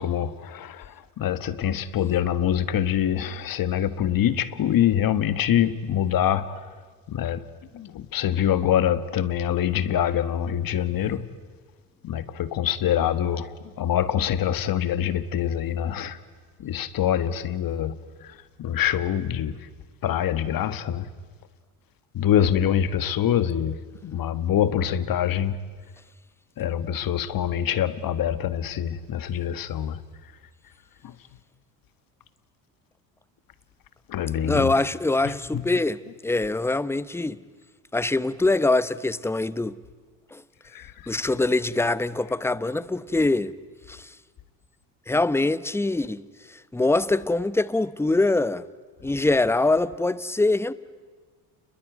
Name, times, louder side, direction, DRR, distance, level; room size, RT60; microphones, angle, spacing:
voice 1, 0.0-6.7 7.1-7.5 7.7-11.2 12.0-16.2 16.6-19.6 20.0-21.1 22.1-25.6 26.6-30.0 31.0-31.1 34.1-34.7 35.3-35.7 40.7-41.1, left 10 dB, 50° left, 1.6 m, -25 dB
voice 2, 34.4-37.4 37.9-39.8 40.3-40.4 41.1-43.5 43.9-44.1 45.1-46.2 46.5-48.6 49.0-50.7, left 2 dB, 5° left, 0.8 m, -23 dB
29.0 x 21.5 x 9.3 m
supercardioid pair, 80°, 45 cm